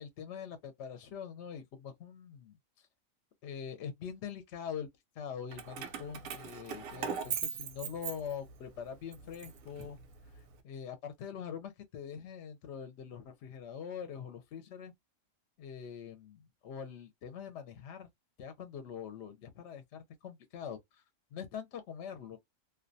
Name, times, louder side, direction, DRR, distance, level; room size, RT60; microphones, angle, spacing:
voice 1, 0.0-2.6 3.4-4.9 5.2-10.0 10.6-14.9 15.6-18.1 18.4-21.0 21.3-22.4, left 7 dB, 65° left, 0.8 m, -43 dB
Keys jangling, 5.5-8.7 9.1-10.4, right 7 dB, 85° right, 1.0 m, -40 dB
2.4 x 2.2 x 2.5 m
omnidirectional pair, 1.4 m